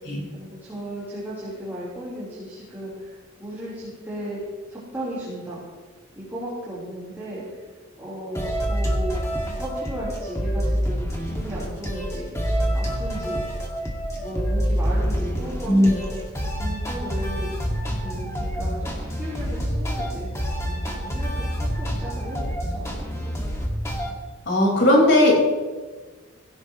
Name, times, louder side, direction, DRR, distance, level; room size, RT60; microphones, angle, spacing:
voice 1, 0.3-4.4 4.7-5.6 6.2-7.6 8.0-13.5 14.1-16.1 16.6-17.5 18.0-22.4 22.7-23.3, right 1 dB, 10° right, -10 dB, 3.9 m, -35 dB
sound 1, 8.3-24.1, equal, 15° left, 2.0 m, -27 dB
voice 2, 24.5-25.3, left 1 dB, 55° left, -2 dB, 4.8 m, -17 dB
17.0 x 17.0 x 3.1 m, 1.3 s
head